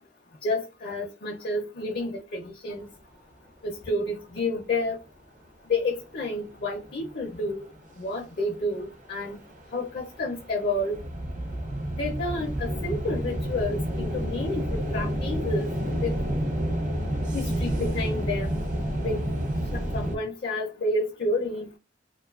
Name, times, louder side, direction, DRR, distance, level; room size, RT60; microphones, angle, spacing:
voice 1, 0.4-2.9 3.6-5.0 5.7-7.6 8.0-9.4 9.7-11.0 11.9-15.7 16.0-16.1 17.3-18.6 19.0-19.2 19.7-21.7, left 2 dB, 55° left, 0.5 m, -30 dB
sound 1, 5.7-5.8 6.1-8.3 8.7-20.2, right 1 dB, 45° right, 0.5 m, -30 dB
2.5 x 2.3 x 2.3 m
head